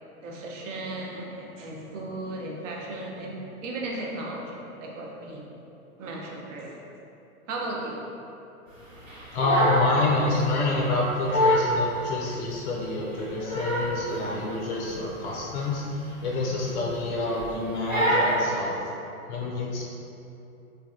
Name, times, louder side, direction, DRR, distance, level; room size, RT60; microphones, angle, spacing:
voice 1, 0.2-3.4 3.6-5.5 6.0-6.8 7.5-8.0 16.7-16.8, right 2 dB, 60° right, -2 dB, 0.6 m, -36 dB
Crying sobbing, 9.1-9.9 10.2-10.5 11.0-11.1 11.3-11.7 12.2-12.3 13.1-14.0 14.2-14.5 14.9-15.0 15.3-15.5 16.3-16.9 17.2-17.5 17.9-18.4, equal, 10° right, 0.8 m, -24 dB
voice 2, 9.3-18.7 19.3-19.8, left 2 dB, 50° left, -3 dB, 0.5 m, -28 dB
3.2 x 2.3 x 2.4 m, 2.8 s
hypercardioid pair, 115°, 44 cm